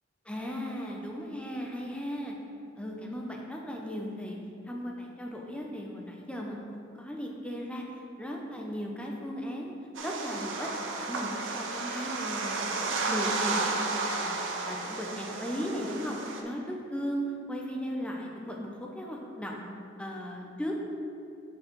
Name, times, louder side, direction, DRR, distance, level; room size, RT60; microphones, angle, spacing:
voice 1, 0.3-2.4 2.8-4.4 4.7-6.6 6.9-7.8 8.2-9.7 10.0-10.7 11.0-19.7 20.0-20.9, equal, 5° left, -1 dB, 0.6 m, -36 dB
sound 1, 9.9-16.4, right 3 dB, 75° right, 0.7 m, -33 dB
6.1 x 4.7 x 4.5 m, 2.6 s
head